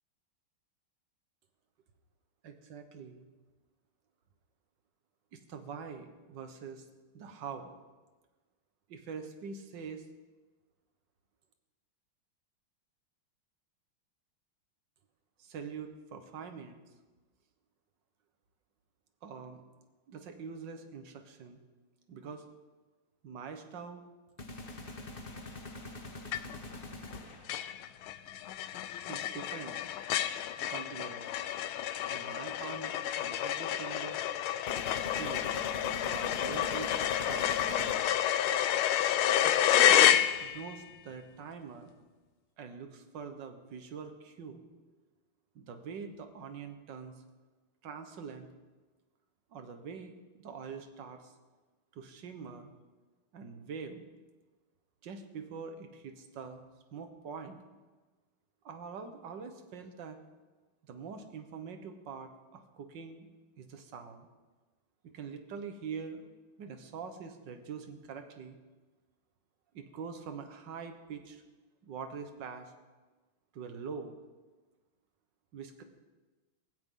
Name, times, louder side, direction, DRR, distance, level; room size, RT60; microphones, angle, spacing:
voice 1, 2.4-3.3 5.3-6.8 7.1-7.7 8.9-10.1 15.4-16.8 19.2-19.6 20.1-21.6 22.1-22.5 23.2-24.0 29.1-29.8 30.7-31.3 32.1-34.2 35.2-35.5 36.1-37.0 37.2-38.1 39.2-41.9 42.6-44.9 45.6-47.2 47.8-48.5 49.5-51.3 51.9-52.7 53.3-54.1 55.0-56.6 56.9-57.6 58.6-60.2 60.8-63.3 63.6-64.3 65.0-68.6 69.7-71.4 71.8-72.7 73.5-74.2 75.5-75.8, right 6 dB, 60° right, 7 dB, 1.8 m, -44 dB
sound 1, 24.4-27.7 34.7-38.7, left 2 dB, 30° left, 1.2 m, -44 dB
sound 2, 26.3-26.8 27.1-27.2 27.5-40.8, left 11 dB, 80° left, 1.5 m, -29 dB
17.5 x 16.5 x 3.9 m, 1.2 s
omnidirectional pair, 2.3 m